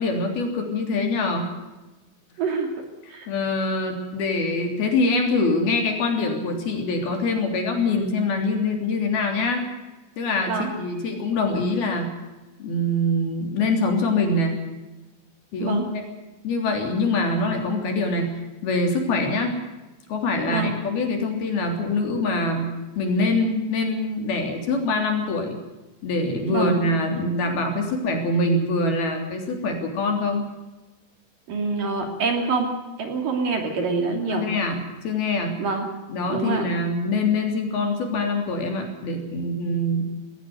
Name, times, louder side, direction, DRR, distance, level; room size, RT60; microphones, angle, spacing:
voice 1, 0.0-1.5 3.3-9.6 10.2-12.1 12.6-14.6 15.5-16.0 16.4-19.5 20.1-25.6 26.0-30.5 34.3-35.6 36.1-40.0, left 2 dB, 55° left, 3 dB, 5.0 m, -24 dB
voice 2, 2.4-2.7 3.1-3.3 10.5-10.7 15.6-15.9 20.5-20.7 26.5-26.8 31.5-32.7 33.0-34.5 35.6-35.9 36.3-36.7, right 4 dB, 50° right, 4 dB, 4.0 m, -25 dB
19.5 x 17.5 x 7.9 m, 1.1 s
omnidirectional pair, 5.3 m